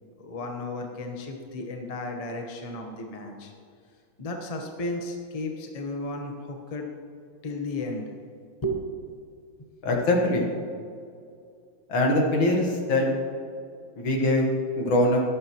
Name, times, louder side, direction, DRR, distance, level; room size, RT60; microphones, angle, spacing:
voice 1, 0.2-3.5 4.2-6.9 7.4-8.1 8.6-8.8, left 1 dB, 30° left, 2 dB, 0.7 m, -33 dB
voice 2, 9.8-10.5 11.9-13.1 14.0-14.5 14.8-15.2, left 1 dB, 70° left, 0 dB, 2.2 m, -22 dB
12.5 x 11.0 x 3.1 m, 2.4 s
omnidirectional pair, 2.3 m